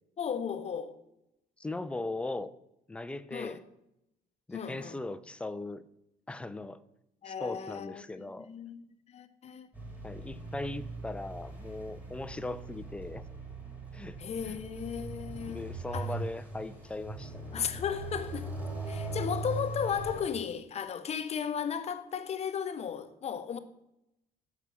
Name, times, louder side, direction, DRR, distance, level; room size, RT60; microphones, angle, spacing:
voice 1, 0.2-0.9 3.3-3.6 4.5-5.0 7.2-8.8 9.1-9.7 14.2-15.6 15.9-16.1 17.5-18.5 18.9-23.6, left 7 dB, 40° left, 0.7 m, -35 dB
voice 2, 1.6-2.5 2.9-3.6 4.5-5.9 6.3-6.8 7.3-8.5 10.0-13.2 13.9-14.6 15.5-17.6, left 2 dB, 5° left, 0.3 m, -39 dB
sound 1, 9.7-20.3, right 2 dB, 10° right, 2.0 m, -40 dB
6.8 x 4.8 x 6.0 m
cardioid pair, 110°, 17 cm